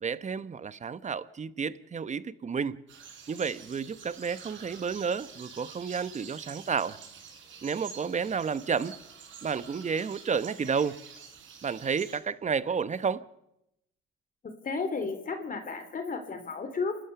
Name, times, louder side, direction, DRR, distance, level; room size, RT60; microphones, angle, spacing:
voice 1, 0.0-2.8 3.3-7.0 7.6-9.0 9.4-11.0 11.6-13.3, right 6 dB, 35° right, 1.0 m, -31 dB
sound 1, 2.9-12.2, right 6 dB, 75° right, 4.8 m, -48 dB
voice 2, 14.6-17.0, left 4 dB, 45° left, 3.2 m, -33 dB
29.5 x 13.0 x 7.0 m
cardioid pair, 90°, 20 cm